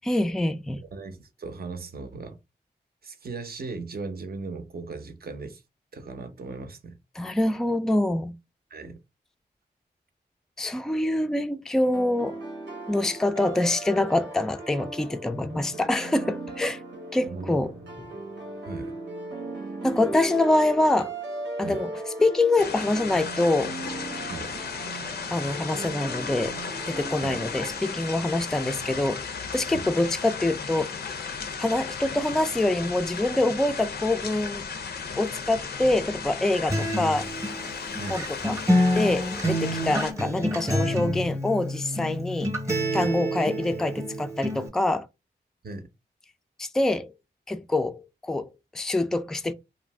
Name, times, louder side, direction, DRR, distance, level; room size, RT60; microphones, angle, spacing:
voice 1, 0.1-0.8 7.1-8.3 10.6-12.4 12.9-16.8 17.1-17.7 19.8-21.1 21.6-21.9 22.2-23.7 25.3-26.6 26.9-31.0 31.6-34.7 35.2-37.3 38.1-38.6 38.9-42.5 42.9-45.1 46.6-47.1 47.5-49.5, left 2 dB, 5° left, 0.3 m, -25 dB
voice 2, 0.8-2.4 3.0-5.6 5.9-7.0 8.7-9.0 17.3-17.6 18.6-18.9 21.6-21.8 24.3-24.5 27.2-27.4 29.7-29.9 36.8-36.9 38.0-38.2 43.0-43.1 45.6-45.9, right 3 dB, 60° right, 0.6 m, -37 dB
sound 1, 11.9-28.8, right 2 dB, 90° right, 0.8 m, -38 dB
sound 2, 22.6-40.1, left 5 dB, 65° left, 0.5 m, -35 dB
Acoustic guitar, 36.7-44.7, equal, 15° right, 0.8 m, -27 dB
2.6 x 2.0 x 3.3 m
cardioid pair, 40°, 18 cm